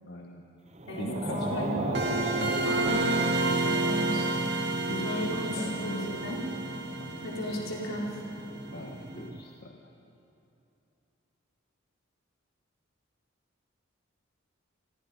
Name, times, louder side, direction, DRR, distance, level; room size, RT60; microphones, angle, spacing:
voice 1, 0.0-0.4 1.0-2.7 3.9-4.3 4.7-6.4 7.0-7.6 8.7-9.7, left 1 dB, 50° left, 1 dB, 1.5 m, -39 dB
sound 1, 0.7-9.5, right 2 dB, 30° right, 0.8 m, -39 dB
voice 2, 1.3-1.8 2.6-3.3 3.6-4.2 5.0-6.4 7.2-8.1, left 1 dB, 70° left, -3 dB, 4.6 m, -34 dB
sound 2, 1.9-8.6, right 2 dB, 55° right, 2.5 m, -30 dB
29.0 x 23.0 x 5.3 m, 2.7 s
head